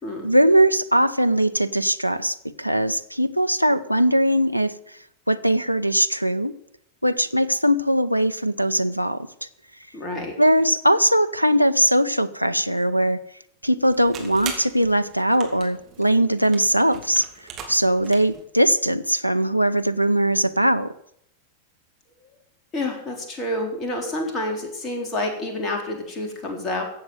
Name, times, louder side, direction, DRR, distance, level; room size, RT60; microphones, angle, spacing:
voice 1, 0.2-4.7 5.3-6.5 7.0-9.5 10.4-13.2 13.6-17.3 17.7-20.9, right 1 dB, 90° left, 17 dB, 0.6 m, -20 dB
voice 2, 9.9-10.3 22.7-26.8, left 1 dB, 25° left, 2 dB, 3.9 m, -28 dB
sound 1, 13.8-18.4, right 6 dB, 30° right, 2.9 m, -39 dB
15.0 x 7.9 x 7.9 m, 0.74 s
figure-of-eight pair, 90°, 0 cm